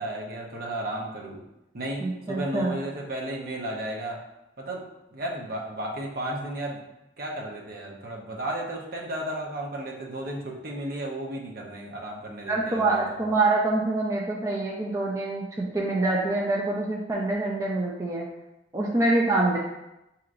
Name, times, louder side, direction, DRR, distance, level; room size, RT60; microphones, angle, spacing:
voice 1, 0.0-1.4 1.7-4.2 4.6-4.8 5.1-6.8 7.2-13.2, right 1 dB, 55° right, -1 dB, 0.7 m, -34 dB
voice 2, 2.0-2.8 12.5-18.3 18.7-19.6, right 2 dB, 15° right, -3 dB, 0.4 m, -25 dB
6.0 x 2.9 x 2.5 m, 0.91 s
head